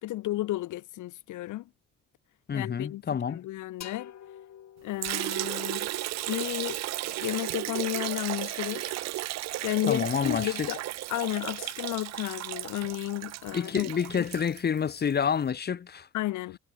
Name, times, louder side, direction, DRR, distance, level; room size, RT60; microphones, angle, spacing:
voice 1, 0.0-1.7 2.5-4.1 4.8-5.9 6.3-8.9 9.6-10.8 11.1-14.3 16.1-16.6, left 16 dB, 80° left, 0.9 m, -33 dB
voice 2, 2.5-3.4 9.9-10.7 13.5-16.1, left 7 dB, 35° left, 0.8 m, -28 dB
sound 1, 3.8-7.4, left 9 dB, 60° left, 4.6 m, -50 dB
Liquid, 5.0-15.1, right 16 dB, 60° right, 0.4 m, -34 dB
cardioid pair, 90°, 30 cm